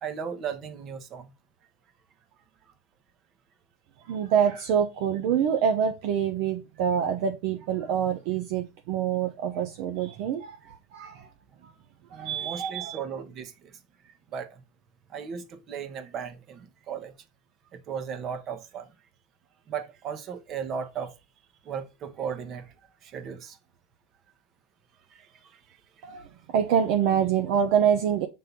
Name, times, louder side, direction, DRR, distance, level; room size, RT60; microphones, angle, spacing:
voice 1, 0.0-1.3 12.1-14.6 15.1-17.1 17.7-18.9 19.7-21.1 21.6-22.7 23.0-23.6 25.1-25.8 26.2-26.3, right 7 dB, 40° right, 1.3 m, -36 dB
voice 2, 4.0-11.3 12.1-12.7 26.0-28.3, right 8 dB, 65° right, 0.8 m, -26 dB
6.7 x 3.8 x 3.9 m
hypercardioid pair, 100°, 0 cm